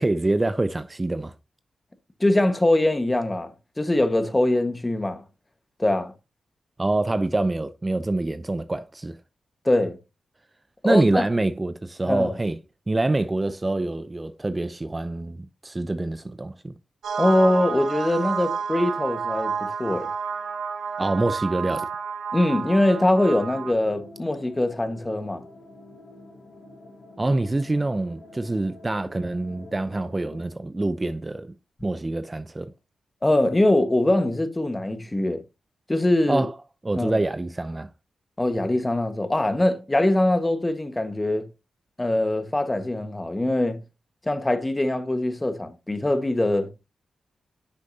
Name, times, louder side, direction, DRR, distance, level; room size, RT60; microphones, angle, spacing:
voice 1, 0.0-1.3 6.8-9.2 10.8-12.6 12.9-16.7 21.0-21.9 27.2-31.5 31.8-32.7 36.3-36.5 36.8-37.9, right 2 dB, 25° right, 0.6 m, -25 dB
voice 2, 2.2-3.5 3.8-5.2 5.8-6.1 9.6-10.0 10.8-11.2 12.1-12.3 17.2-19.5 19.8-20.1 22.3-25.4 33.2-35.4 35.9-36.5 36.9-37.2 38.4-41.5 42.0-43.8 44.2-46.7, left 1 dB, 20° left, 1.5 m, -22 dB
sound 1, 17.0-23.7, right 6 dB, 85° right, 1.2 m, -30 dB
sound 2, 22.8-30.4, left 2 dB, 65° left, 3.9 m, -46 dB
10.0 x 6.3 x 2.8 m
cardioid pair, 50°, 0 cm